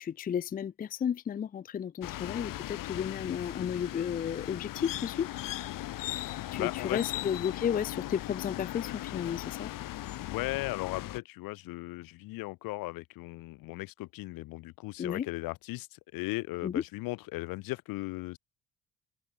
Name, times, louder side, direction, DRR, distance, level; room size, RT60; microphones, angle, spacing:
voice 1, 0.0-5.3 6.5-9.7 15.0-15.2 16.6-16.7, left 8 dB, 25° left, 0.4 m, -33 dB
sound 1, 2.0-11.2, left 15 dB, 75° left, 2.2 m, -38 dB
voice 2, 6.6-7.3 10.2-18.4, left 21 dB, 90° left, 2.1 m, -37 dB
open air
cardioid pair, 95°, 34 cm